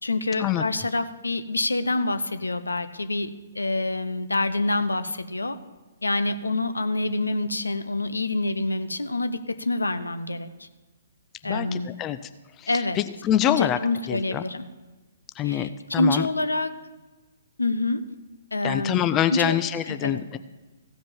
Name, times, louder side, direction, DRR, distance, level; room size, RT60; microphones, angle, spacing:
voice 1, 0.0-5.6 6.0-10.7 11.4-11.9 12.7-13.0 13.4-14.7 15.4-16.7 17.6-18.0 18.5-19.0 19.3-19.6 19.9-20.2, left 2 dB, 75° left, 10 dB, 0.7 m, -26 dB
voice 2, 11.4-12.2 12.6-13.8 14.1-14.4 15.4-16.3 18.6-20.4, left 11 dB, 20° left, 12 dB, 0.4 m, -25 dB
15.5 x 5.2 x 7.0 m, 1.2 s
figure-of-eight pair, 125°, 0 cm